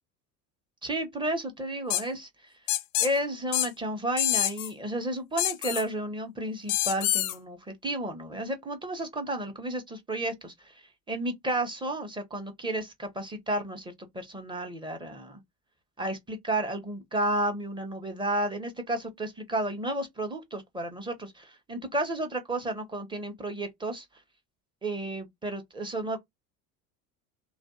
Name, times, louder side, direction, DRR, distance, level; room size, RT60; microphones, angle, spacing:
voice 1, 0.8-2.3 3.0-10.7 11.1-15.4 16.0-24.0 24.8-26.2, right 1 dB, 10° right, 0.8 m, -32 dB
sound 1, 1.9-2.0 2.7-3.1 3.5-3.7 4.2-4.7 5.4-5.8 6.7-7.4, left 15 dB, 50° left, 0.5 m, -26 dB
2.5 x 2.3 x 2.3 m
figure-of-eight pair, 70°, 48 cm